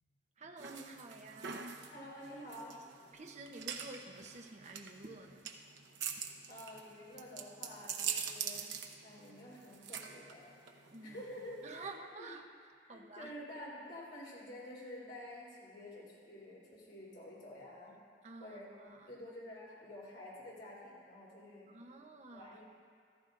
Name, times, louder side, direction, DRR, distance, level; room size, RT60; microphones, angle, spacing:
voice 1, 0.4-1.7 3.1-5.5 10.9-11.2 11.6-12.5 12.9-13.3 18.2-19.2 21.7-22.6, right 3 dB, 40° right, 0.8 m, -50 dB
sound 1, 0.6-11.9, right 7 dB, 80° right, 0.8 m, -44 dB
voice 2, 1.9-2.8 6.5-8.7 9.0-10.5 11.0-12.3 12.8-18.0 18.4-21.7 22.3-22.6, left 1 dB, 70° left, 3.5 m, -49 dB
15.5 x 14.5 x 2.5 m
head